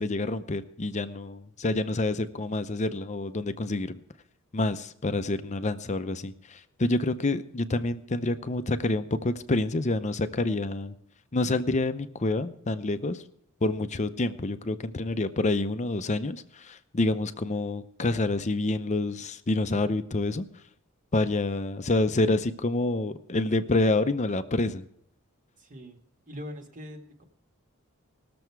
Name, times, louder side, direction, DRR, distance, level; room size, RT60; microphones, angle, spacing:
voice 1, 0.0-4.0 4.5-10.9 11.3-13.2 13.6-20.5 21.1-24.8, left 2 dB, 35° left, 11 dB, 0.6 m, -28 dB
voice 2, 25.6-26.0 26.3-27.2, equal, 40° right, 3 dB, 1.7 m, -42 dB
19.5 x 6.9 x 4.6 m, 0.73 s
head